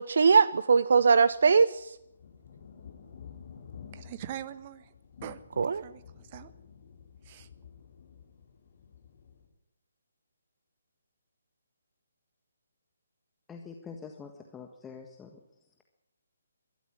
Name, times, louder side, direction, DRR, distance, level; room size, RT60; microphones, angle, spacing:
voice 1, 0.0-2.0 5.6-5.8, right 5 dB, 55° right, 0.7 m, -21 dB
sound 1, 1.1-9.5, left 7 dB, 50° left, 7.3 m, -51 dB
voice 2, 3.9-4.9 5.2-6.5 7.2-7.5, right 11 dB, 30° right, 1.4 m, -43 dB
voice 3, 13.5-15.4, left 5 dB, 10° left, 1.6 m, -45 dB
22.0 x 13.5 x 9.8 m
figure-of-eight pair, 140°, 0 cm